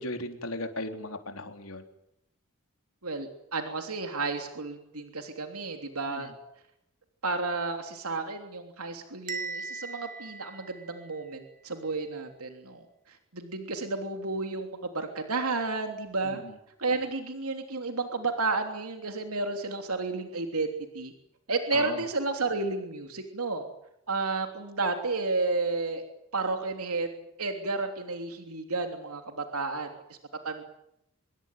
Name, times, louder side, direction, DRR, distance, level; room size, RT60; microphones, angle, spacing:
voice 1, 0.0-1.8 6.1-6.3 16.2-16.5 21.7-22.0, left 1 dB, 75° left, 6 dB, 3.8 m, -37 dB
voice 2, 3.0-6.3 7.2-16.4 16.8-21.1 21.5-23.6 24.1-26.0 26.3-27.1 27.4-29.9 30.4-30.6, right 3 dB, 90° right, 5 dB, 3.2 m, -32 dB
Bell, 9.3-11.3, right 4 dB, 40° right, 2.9 m, -39 dB
26.0 x 22.0 x 9.3 m, 0.78 s
head